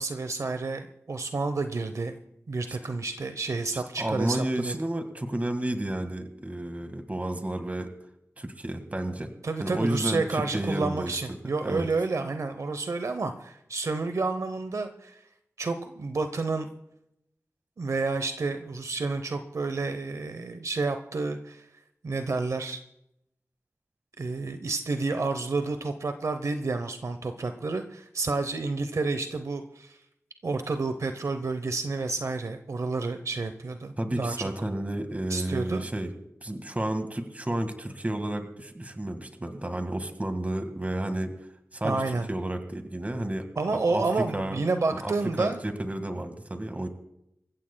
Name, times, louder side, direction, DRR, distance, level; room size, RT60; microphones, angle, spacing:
voice 1, 0.0-2.1 2.5-4.7 9.4-15.2 15.6-16.7 17.8-21.6 22.0-22.8 24.2-30.0 30.4-34.5 35.3-35.8 41.8-42.3 43.6-45.6, right 3 dB, 75° right, 8 dB, 0.8 m, -30 dB
voice 2, 3.7-7.9 8.4-9.3 9.6-11.1 11.6-11.9 34.0-36.1 36.4-41.3 41.7-44.0 44.3-44.6 44.9-46.9, right 1 dB, 25° right, 7 dB, 1.8 m, -31 dB
26.5 x 15.0 x 2.3 m, 0.80 s
wide cardioid pair, 65°, 5 cm